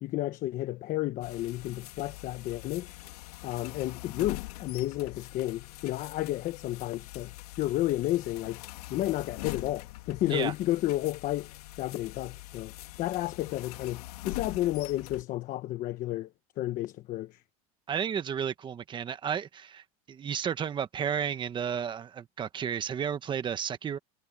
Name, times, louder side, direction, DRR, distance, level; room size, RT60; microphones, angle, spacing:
voice 1, 0.0-3.0 3.4-8.6 8.9-11.5 11.8-12.7 13.0-16.3 16.6-17.4, left 15 dB, 45° left, 1.1 m, -32 dB
sound 1, 1.2-15.2, left 19 dB, 90° left, 2.2 m, -43 dB
voice 2, 17.9-24.0, right 8 dB, 25° right, 1.3 m, -32 dB
supercardioid pair, 135°, 19 cm